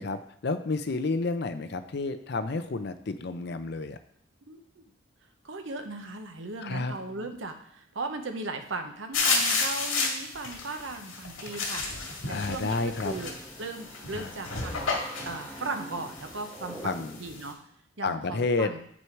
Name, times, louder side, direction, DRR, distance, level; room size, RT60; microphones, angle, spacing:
voice 1, 0.0-4.0 6.6-6.9 12.3-13.1 14.1-14.3 16.8-17.2 18.0-18.7, left 3 dB, 55° left, 10 dB, 0.5 m, -30 dB
voice 2, 4.5-4.8 5.4-13.3 13.6-14.9 15.3-17.6 18.0-18.8, right 3 dB, 70° right, 6 dB, 0.9 m, -37 dB
sound 1, 9.1-17.5, left 4 dB, 90° left, 2.0 m, -32 dB
sound 2, 12.2-17.4, right 1 dB, 5° right, 1.4 m, -46 dB
7.7 x 6.2 x 4.6 m, 0.69 s
head